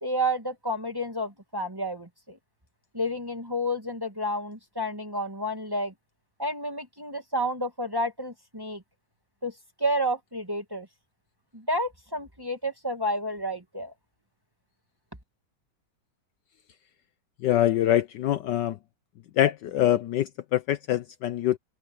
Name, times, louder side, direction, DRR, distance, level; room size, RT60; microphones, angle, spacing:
voice 1, 0.0-2.4 2.9-5.9 6.4-8.8 9.4-10.9 11.5-13.9, equal, 10° right, 1.6 m, -30 dB
voice 2, 17.4-18.8 19.4-21.6, left 12 dB, 70° left, 1.2 m, -24 dB
open air
omnidirectional pair, 2.2 m